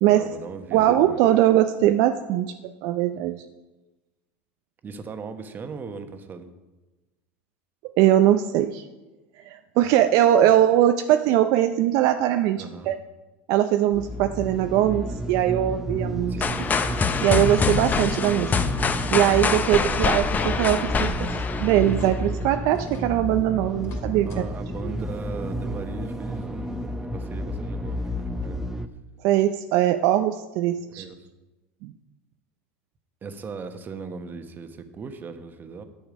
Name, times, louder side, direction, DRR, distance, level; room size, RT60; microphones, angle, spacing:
voice 1, 0.1-1.2 4.8-6.5 10.4-10.5 12.6-12.9 16.3-16.6 19.6-20.0 24.2-28.6 30.9-31.3 33.2-35.8, right 4 dB, 30° right, 8 dB, 1.1 m, -38 dB
voice 2, 0.7-3.4 8.0-8.8 9.4-13.0 13.5-16.4 17.2-18.6 19.1-21.3 21.6-24.3 24.8-24.9 29.2-31.0 31.8-31.9, right 12 dB, 60° right, 8 dB, 0.5 m, -21 dB
sound 1, 13.9-28.9, equal, 5° right, 0.6 m, -31 dB
sound 2, 16.4-22.3, left 5 dB, 25° left, 0.8 m, -25 dB
sound 3, 21.9-22.2 22.7-23.1 23.7-24.4 24.8-24.9 26.3-26.4 26.9-27.0, left 5 dB, 40° left, 2.3 m, -49 dB
10.5 x 7.1 x 5.1 m, 1.1 s
hypercardioid pair, 100°, 7 cm